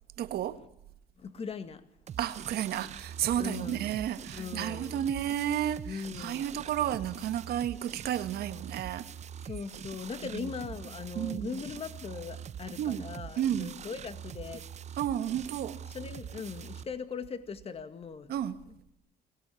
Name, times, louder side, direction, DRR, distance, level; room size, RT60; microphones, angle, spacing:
voice 1, 0.2-0.6 2.2-9.1 10.3-10.5 11.2-11.6 12.8-13.0 13.4-13.7 15.0-15.8 18.3-18.6, right 10 dB, 70° right, 1.7 m, -32 dB
voice 2, 1.2-1.9 3.4-3.9 4.3-5.0 5.9-6.6 9.4-14.7 15.9-18.3, left 6 dB, 35° left, 1.9 m, -40 dB
sound 1, 2.1-16.8, right 8 dB, 40° right, 0.8 m, -44 dB
24.0 x 17.0 x 8.5 m
cardioid pair, 110°, 17 cm